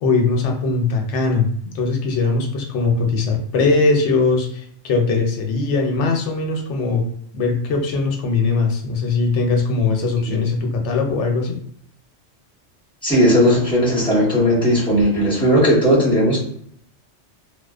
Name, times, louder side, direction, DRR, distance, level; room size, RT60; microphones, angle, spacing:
voice 1, 0.0-7.0 7.3-11.6, left 3 dB, 75° left, 2 dB, 0.8 m, -20 dB
voice 2, 13.0-16.4, equal, 5° left, -7 dB, 0.9 m, -16 dB
2.3 x 2.2 x 2.3 m, 0.67 s
omnidirectional pair, 1.2 m